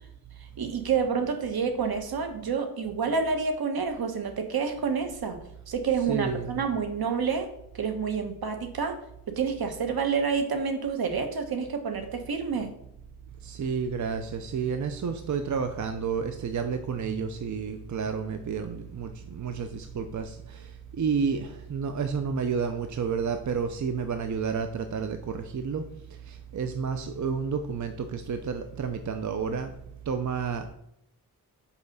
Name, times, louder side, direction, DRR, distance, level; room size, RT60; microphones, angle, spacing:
voice 1, 0.6-5.4 5.7-7.5 7.7-9.0 9.3-12.7, right 5 dB, 70° right, 6 dB, 1.3 m, -28 dB
voice 2, 6.1-6.6 13.4-25.8 26.3-29.7 30.1-30.7, right 6 dB, 50° right, 7 dB, 0.7 m, -30 dB
5.6 x 5.1 x 6.6 m, 0.78 s
wide cardioid pair, 100°, 38 cm